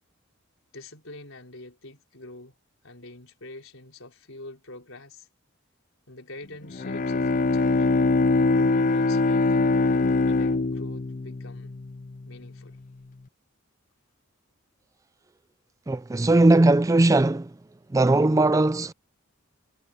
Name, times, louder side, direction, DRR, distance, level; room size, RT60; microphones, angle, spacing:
voice 1, 0.7-2.5 2.8-5.3 6.1-7.9 8.4-11.8 12.3-12.8, left 2 dB, 70° left, 4.6 m, -45 dB
Bowed string instrument, 6.6-12.3, left 3 dB, 40° left, 0.5 m, -23 dB
voice 2, 15.9-17.5 17.9-18.9, right 2 dB, 15° right, 0.4 m, -19 dB
head